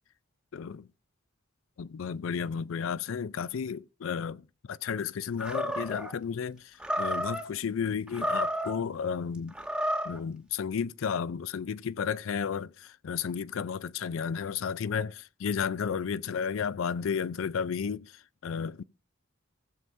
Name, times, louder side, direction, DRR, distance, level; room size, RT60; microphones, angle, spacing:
voice 1, 0.5-0.9 1.8-4.4 4.7-9.5 10.0-18.1 18.4-18.8, left 6 dB, 75° left, 0.4 m, -33 dB
Animal, 5.4-6.1 6.8-7.5 8.1-8.8 9.5-10.2, equal, 5° right, 1.0 m, -31 dB
16.0 x 7.6 x 2.7 m
head